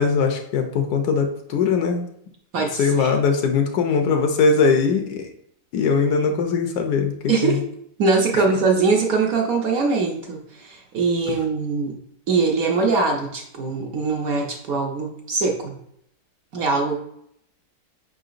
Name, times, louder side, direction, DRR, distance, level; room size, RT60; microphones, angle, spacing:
voice 1, 0.0-2.1 2.6-5.3 5.7-7.6 8.3-8.4, left 5 dB, 75° left, 5 dB, 1.0 m, -21 dB
voice 2, 2.5-3.2 7.3-7.7 8.0-12.0 12.3-15.8 16.5-16.9, right 4 dB, 65° right, 0 dB, 0.9 m, -22 dB
5.4 x 3.8 x 2.5 m, 0.72 s
omnidirectional pair, 1.9 m